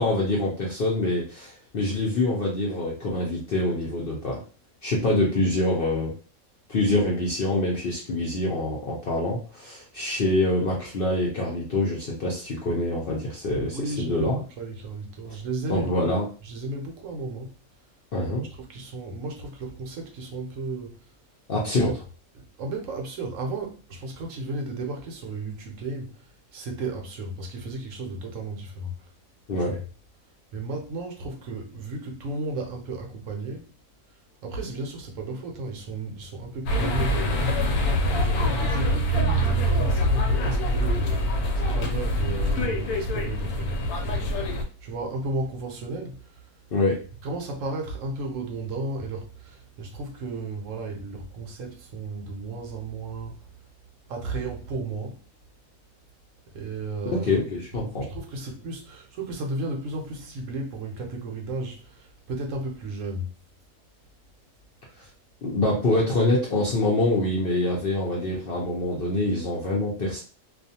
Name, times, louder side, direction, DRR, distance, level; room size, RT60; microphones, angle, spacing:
voice 1, 0.0-4.4 4.8-6.1 6.7-14.4 15.7-16.2 18.1-18.4 21.5-21.9 29.5-29.8 46.7-47.0 57.1-58.0 65.4-70.2, left 2 dB, 60° left, 0.6 m, -25 dB
voice 2, 13.5-16.1 16.4-17.5 18.4-21.1 21.8-22.0 22.3-29.1 29.6-29.8 30.5-33.7 34.1-37.8 38.1-46.6 47.2-53.5 54.1-55.2 56.5-57.5 57.8-63.4, right 2 dB, 70° right, 0.9 m, -34 dB
sound 1, 36.7-44.6, equal, 85° left, 1.1 m, -24 dB
2.4 x 2.3 x 2.7 m
omnidirectional pair, 1.5 m